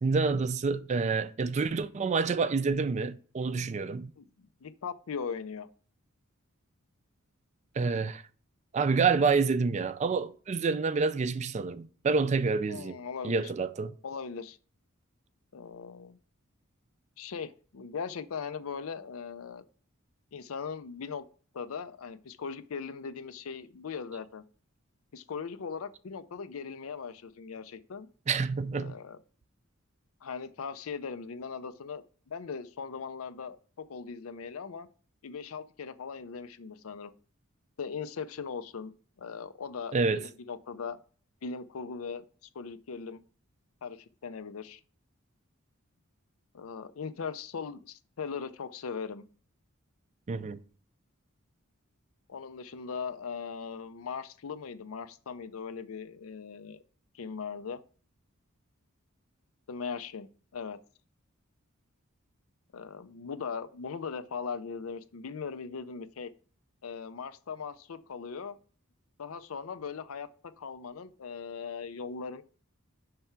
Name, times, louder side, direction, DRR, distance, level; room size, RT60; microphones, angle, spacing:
voice 1, 0.0-4.1 7.8-8.2 8.7-13.0 13.2-13.9 28.3-28.9 39.9-40.2 50.3-50.6, right 4 dB, 35° right, 0.4 m, -28 dB
voice 2, 4.2-5.7 12.7-13.5 14.0-14.6 15.5-16.2 17.2-19.6 20.3-21.3 21.5-24.4 25.1-28.1 28.7-29.2 30.2-34.9 35.2-37.1 37.8-41.0 41.4-43.2 43.8-44.8 46.5-49.3 52.3-56.8 57.1-57.8 59.7-60.8 62.7-66.3 66.8-68.6 69.2-70.3 70.6-72.4, left 5 dB, 80° left, 0.5 m, -39 dB
5.5 x 3.4 x 5.7 m
head